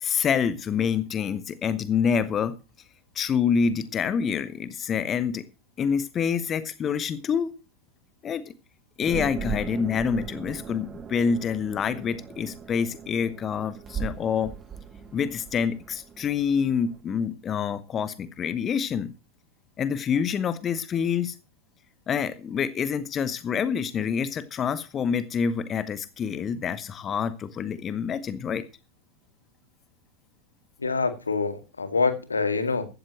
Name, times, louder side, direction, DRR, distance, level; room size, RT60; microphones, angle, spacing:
voice 1, 0.0-2.5 3.1-5.5 5.8-7.5 8.2-8.5 9.0-14.5 15.1-19.1 19.8-21.4 22.1-28.6, left 7 dB, 25° left, 1.0 m, -27 dB
sound 1, 9.0-17.0, right 6 dB, 20° right, 1.3 m, -38 dB
voice 2, 30.8-32.9, left 4 dB, 75° left, 2.0 m, -26 dB
15.5 x 13.0 x 3.1 m
figure-of-eight pair, 90°, 0 cm